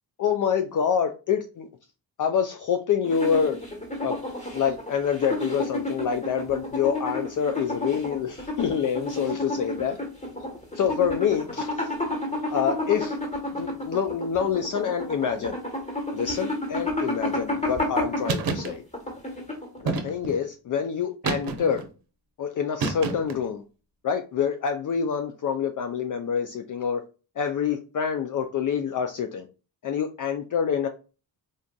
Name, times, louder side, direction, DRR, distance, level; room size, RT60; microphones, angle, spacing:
voice 1, 0.2-1.7 2.2-3.6 4.0-4.2 4.5-10.0 10.7-11.9 12.5-13.2 13.5-15.6 16.1-18.8 19.8-21.8 22.4-23.6 24.0-27.0 27.4-29.5 29.8-30.9, left 7 dB, 45° left, 6 dB, 0.4 m, -26 dB
sound 1, 3.0-19.9, left 1 dB, 15° left, 1.3 m, -31 dB
sound 2, 18.3-18.7 19.9-20.4 21.2-21.9 22.8-23.4, right 4 dB, 55° right, 0.7 m, -28 dB
3.9 x 2.5 x 2.2 m, 0.34 s
cardioid pair, 70°, 43 cm